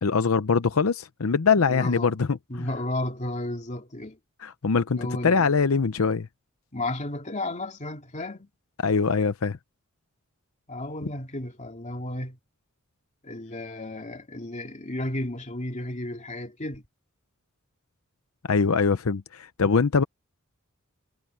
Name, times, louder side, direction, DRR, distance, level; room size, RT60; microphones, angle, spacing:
voice 1, 0.0-2.7 4.4-6.3 8.8-9.6 18.5-20.0, left 5 dB, 80° left, 0.7 m, -23 dB
voice 2, 1.7-2.2 2.5-4.2 4.9-5.5 6.7-8.5 10.7-12.4 13.2-16.8, left 1 dB, 35° left, 2.8 m, -33 dB
head